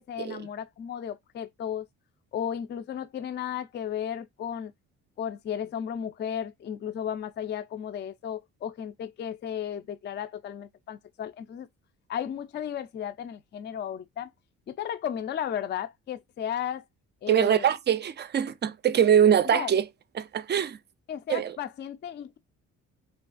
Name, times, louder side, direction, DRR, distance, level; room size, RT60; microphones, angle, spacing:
voice 1, 0.1-1.8 2.3-4.7 5.2-11.7 12.1-14.3 14.7-16.8 17.2-17.7 19.4-19.7 21.1-22.4, left 9 dB, 35° left, 0.4 m, -34 dB
voice 2, 17.3-19.8 20.2-20.8 21.3-21.5, right 9 dB, 35° right, 0.4 m, -23 dB
3.3 x 2.3 x 2.4 m
cardioid pair, 90°, 30 cm